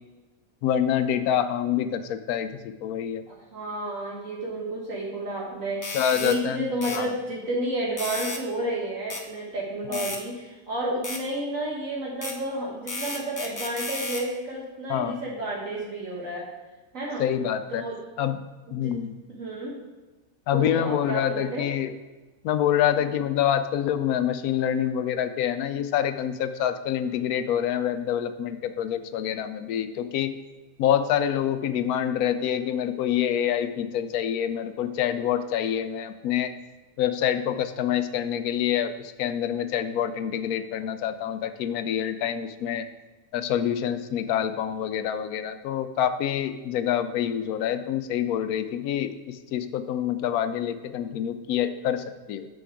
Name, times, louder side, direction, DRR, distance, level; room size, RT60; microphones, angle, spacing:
voice 1, 0.6-3.2 5.9-7.1 9.9-10.1 14.9-15.2 17.2-17.8 18.2-18.4 18.7-19.2 20.5-21.9 22.4-30.4 30.8-36.5 37.0-42.9 43.3-52.5, left 10 dB, 85° left, 10 dB, 1.1 m, -26 dB
voice 2, 3.3-16.5 16.9-17.2 17.7-18.0 18.7-18.9 19.3-19.7 20.5-21.6, right 1 dB, 65° right, -3 dB, 1.6 m, -31 dB
sound 1, 5.8-6.4 6.8-7.0 8.0-8.4 9.1-9.2 9.9-10.2 11.0-11.2 12.2-12.4 12.9-14.3, left 2 dB, 20° left, 0.6 m, -33 dB
6.6 x 6.3 x 4.8 m, 1.2 s
omnidirectional pair, 1.5 m